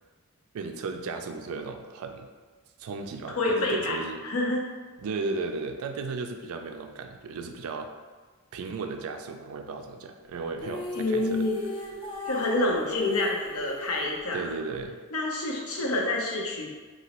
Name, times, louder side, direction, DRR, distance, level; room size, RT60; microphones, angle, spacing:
voice 1, 0.5-2.3 2.8-4.2 5.0-7.9 8.5-11.4 14.3-15.0, right 4 dB, 75° right, 6 dB, 0.3 m, -35 dB
voice 2, 3.4-4.6 10.9-11.6 12.3-14.4 15.1-16.7, left 2 dB, 80° left, -1 dB, 0.6 m, -27 dB
sound 1, 10.6-14.8, left 2 dB, 25° left, 0.4 m, -38 dB
2.9 x 2.7 x 2.9 m, 1.4 s
head